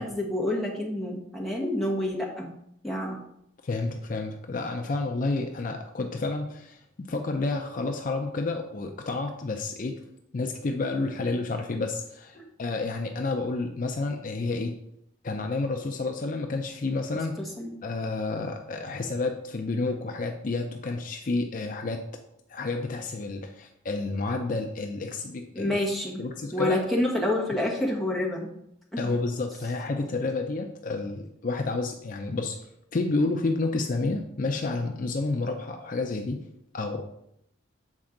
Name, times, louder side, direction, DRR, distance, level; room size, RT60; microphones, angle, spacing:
voice 1, 0.0-2.5 2.8-3.2 12.3-12.4 17.4-17.7 25.5-26.2 26.5-28.5 28.9-29.0, left 1 dB, ahead, -4 dB, 1.2 m, -28 dB
voice 2, 3.6-10.0 10.3-14.8 15.2-17.4 17.8-22.0 22.5-25.8 26.2-26.8 29.0-32.6 32.9-36.4 36.7-37.1, left 3 dB, 45° left, 4 dB, 0.5 m, -30 dB
7.3 x 4.3 x 3.8 m, 0.76 s
head